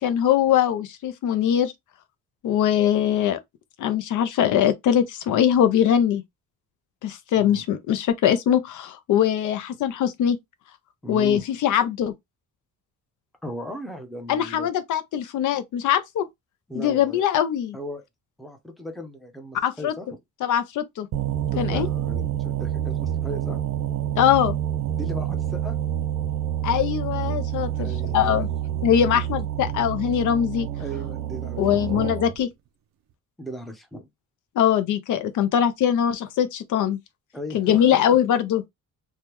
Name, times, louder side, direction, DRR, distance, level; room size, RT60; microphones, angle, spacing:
voice 1, 0.0-1.7 2.4-3.4 3.8-6.2 7.0-10.4 11.1-12.1 14.3-16.2 16.7-17.8 19.6-19.9 20.4-21.1 21.6-21.9 24.2-24.6 26.6-28.5 28.8-30.7 31.6-32.5 34.6-37.0 37.5-38.6, left 9 dB, 65° left, 0.5 m, -22 dB
voice 2, 7.3-7.6 11.0-11.4 13.4-14.7 16.7-17.2 17.7-18.0 18.4-20.2 21.5-23.6 24.9-25.7 27.8-28.6 29.0-29.3 30.8-31.9 33.4-34.1 37.3-38.2, equal, ahead, 0.6 m, -37 dB
sound 1, 21.1-32.4, right 11 dB, 55° right, 0.4 m, -28 dB
3.4 x 2.2 x 2.9 m
cardioid pair, 145°, 33 cm